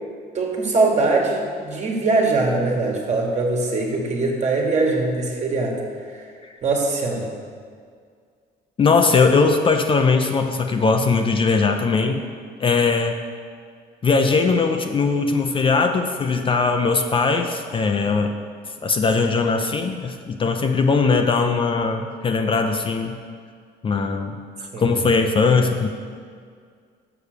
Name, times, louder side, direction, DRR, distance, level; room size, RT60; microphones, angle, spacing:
voice 1, 0.3-5.8 6.6-7.3 24.7-24.8, right 3 dB, 40° right, 0 dB, 1.6 m, -21 dB
voice 2, 8.8-12.2 12.6-13.2 14.0-18.4 18.8-23.1 23.8-24.4 24.8-25.9, left 4 dB, 30° left, 5 dB, 0.6 m, -20 dB
6.9 x 5.9 x 6.7 m, 2.1 s
cardioid pair, 110°, 17 cm